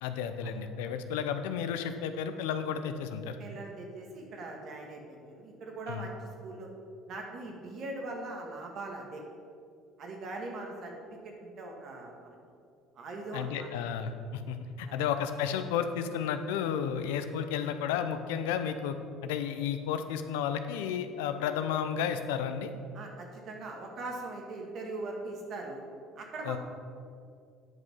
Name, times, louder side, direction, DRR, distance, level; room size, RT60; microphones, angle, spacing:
voice 1, 0.0-3.4 5.9-6.1 13.3-22.7 26.5-26.6, left 8 dB, 80° left, 9 dB, 0.6 m, -32 dB
voice 2, 3.4-6.2 6.4-6.7 7.1-9.2 10.0-12.4 12.9-13.7 14.8-15.0 22.9-25.8 26.2-26.6, right 2 dB, 55° right, 1 dB, 1.9 m, -41 dB
9.3 x 5.2 x 5.6 m, 2.4 s
hypercardioid pair, 75°, 0 cm